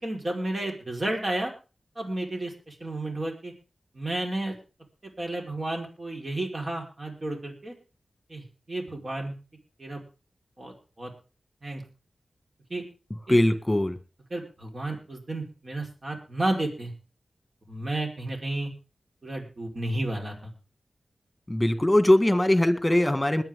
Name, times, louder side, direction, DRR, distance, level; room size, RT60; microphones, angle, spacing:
voice 1, 0.0-1.5 2.0-3.5 3.9-4.5 5.0-7.7 8.3-9.3 9.8-10.0 10.6-11.1 11.6-11.8 12.7-12.8 13.3-13.4 14.3-16.9 17.7-18.7 19.2-20.5, right 1 dB, 45° right, 1 dB, 4.7 m, -32 dB
voice 2, 13.3-14.0 21.5-23.4, left 1 dB, 15° left, 10 dB, 2.0 m, -21 dB
21.5 x 9.1 x 3.8 m, 0.32 s
wide cardioid pair, 60°, 0 cm